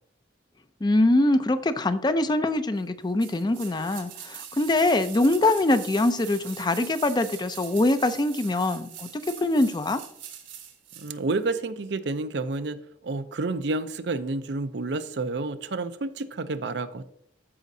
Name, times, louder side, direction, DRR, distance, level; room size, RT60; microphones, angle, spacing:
voice 1, 0.8-10.0, left 2 dB, 25° left, 11 dB, 0.4 m, -23 dB
sound 1, 3.2-11.1 11.4-11.5, right 10 dB, 80° right, 1.6 m, -42 dB
voice 2, 11.0-12.8 13.0-17.0, right 3 dB, 65° right, 11 dB, 0.5 m, -29 dB
13.5 x 5.1 x 2.7 m, 0.72 s
head